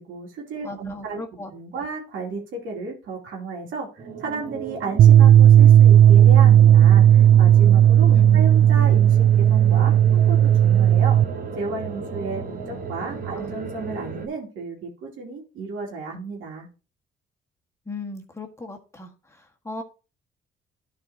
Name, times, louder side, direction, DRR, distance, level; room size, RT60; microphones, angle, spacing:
voice 1, 0.0-1.2 1.5-11.2 11.6-16.7, right 4 dB, 85° right, 2.8 m, -33 dB
voice 2, 0.6-1.5 8.1-8.4 13.3-13.5 17.8-19.8, left 2 dB, 15° left, 1.6 m, -37 dB
sound 1, 4.0-14.3, right 5 dB, 45° right, 1.5 m, -35 dB
sound 2, 5.0-11.2, right 10 dB, 65° right, 0.4 m, -13 dB
12.0 x 4.6 x 2.9 m
cardioid pair, 90°, 20 cm